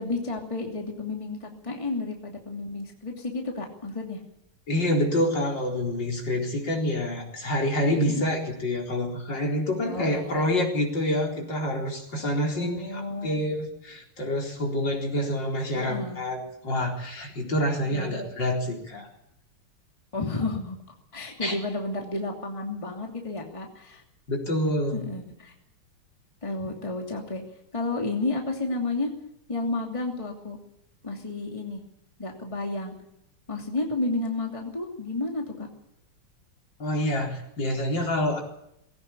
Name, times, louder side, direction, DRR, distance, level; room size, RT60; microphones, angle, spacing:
voice 1, 0.0-4.2 8.1-8.2 9.9-10.5 12.5-13.4 15.7-16.2 17.9-18.2 20.1-20.8 21.1-24.0 24.9-25.5 26.4-27.4 27.7-29.1 29.5-30.6 31.0-31.8 32.2-32.9 33.5-35.7, left 2 dB, 15° left, 1 dB, 2.7 m, -31 dB
voice 2, 4.7-19.1 21.4-21.5 24.3-25.1 36.8-38.4, left 1 dB, 55° left, 1 dB, 4.8 m, -27 dB
20.0 x 17.0 x 8.6 m, 0.78 s
omnidirectional pair, 2.3 m